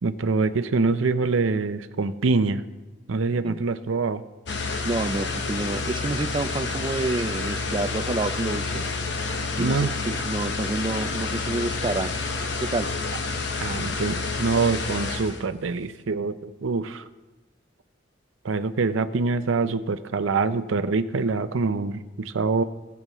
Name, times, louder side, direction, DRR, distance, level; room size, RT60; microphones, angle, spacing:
voice 1, 0.0-2.6 3.1-4.2 9.6-9.9 13.6-17.0 18.4-22.6, right 4 dB, 90° right, 12 dB, 0.6 m, -25 dB
sound 1, 4.5-15.4, left 4 dB, 60° left, 0.9 m, -29 dB
voice 2, 4.8-8.9 9.6-12.2 12.6-12.9, right 2 dB, 25° right, 12 dB, 0.3 m, -28 dB
19.5 x 6.9 x 3.1 m, 1.2 s
head